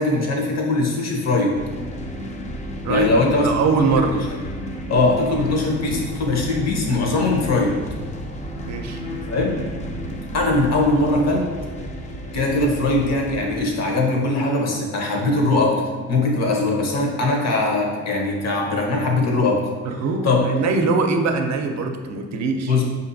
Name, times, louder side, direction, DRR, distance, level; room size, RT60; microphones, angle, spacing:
voice 1, 0.0-1.6 2.9-3.5 3.8-4.2 4.9-7.8 9.3-9.6 10.3-11.5 12.3-15.8 16.1-19.6 20.2-20.4 22.7-22.8, left 2 dB, 60° left, 0 dB, 0.9 m, -20 dB
sound 1, 1.5-13.6, equal, 25° left, 0.4 m, -32 dB
voice 2, 3.4-4.2 8.7-9.0 19.8-22.7, right 4 dB, 65° right, 5 dB, 0.5 m, -22 dB
5.0 x 2.7 x 2.6 m, 1.5 s
cardioid pair, 90°, 30 cm